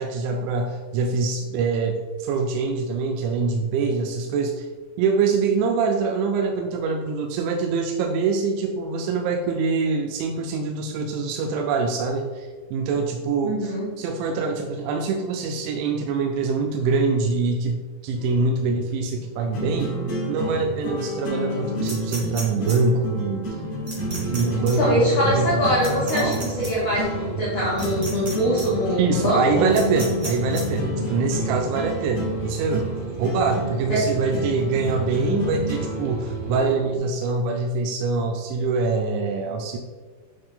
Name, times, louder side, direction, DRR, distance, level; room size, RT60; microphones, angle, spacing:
voice 1, 0.0-4.7 5.0-19.9 20.3-23.5 24.3-25.7 26.1-26.3 28.9-32.9 33.2-39.8, right 4 dB, 90° right, 3 dB, 2.8 m, -24 dB
voice 2, 13.4-13.9 24.6-29.4 33.9-34.0, equal, 80° left, -8 dB, 1.4 m, -23 dB
sound 1, 18.2-37.0, left 1 dB, 55° left, 1.6 m, -31 dB
sound 2, 21.9-22.8 23.9-24.4 24.7-24.8 25.8-26.7 27.8-28.3 28.6-28.7 29.7-30.6, right 2 dB, 50° right, 1.1 m, -34 dB
sound 3, 23.9-36.6, right 6 dB, 70° right, 1.4 m, -34 dB
8.6 x 3.0 x 3.9 m, 1.4 s
omnidirectional pair, 5.1 m